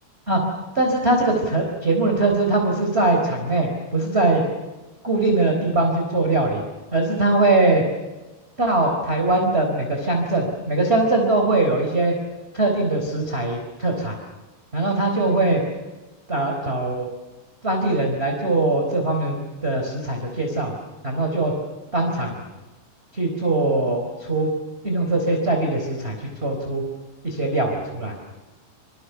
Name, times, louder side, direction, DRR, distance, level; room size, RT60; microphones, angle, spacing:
voice 1, 0.7-4.4 5.0-6.6 6.9-7.8 8.6-12.1 12.5-14.2 14.7-15.6 16.3-17.1 17.6-20.7 21.0-21.5 21.9-22.4 23.1-24.5 24.8-26.8 27.2-28.3, right 2 dB, 15° right, 2 dB, 3.6 m, -21 dB
28.0 x 26.0 x 6.9 m, 1.2 s
omnidirectional pair, 5.2 m